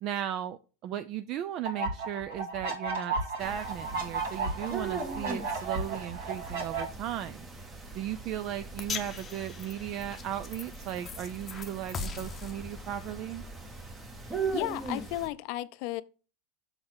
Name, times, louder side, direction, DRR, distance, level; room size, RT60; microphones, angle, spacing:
voice 1, 0.0-7.5 7.9-13.4, right 11 dB, 40° right, 0.4 m, -36 dB
sound 1, 1.6-6.8, right 3 dB, 80° right, 2.3 m, -34 dB
sound 2, 3.4-15.3, right 4 dB, 15° right, 1.0 m, -40 dB
sound 3, 8.8-15.1, left 5 dB, 20° left, 0.8 m, -42 dB
voice 2, 14.3-16.0, left 16 dB, 55° left, 0.4 m, -34 dB
6.4 x 3.9 x 6.0 m
supercardioid pair, 145°, 0 cm